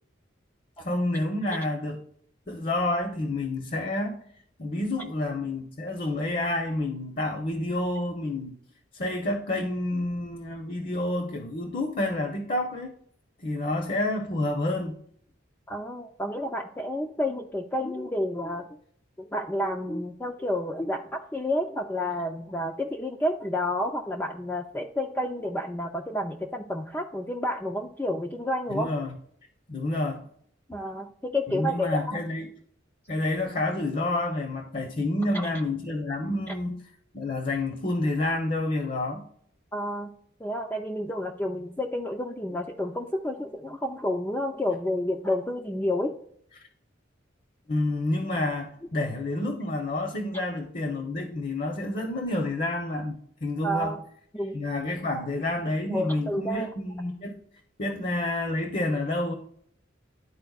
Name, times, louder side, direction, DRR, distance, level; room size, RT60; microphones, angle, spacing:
voice 1, 0.8-2.0 2.5-4.2 4.6-8.6 8.9-12.9 13.4-15.0 28.7-29.1 29.7-30.3 31.5-32.5 33.1-36.8 37.1-39.2 47.7-53.9 54.5-57.4 57.8-59.3, left 2 dB, 45° left, 4 dB, 0.7 m, -29 dB
voice 2, 15.7-18.7 19.2-28.9 30.7-32.2 36.5-36.6 39.7-40.1 40.4-46.1 53.6-54.0 54.3-54.6 55.9-56.7, left 1 dB, 10° left, 1 dB, 0.4 m, -30 dB
11.0 x 4.3 x 2.3 m, 0.65 s
head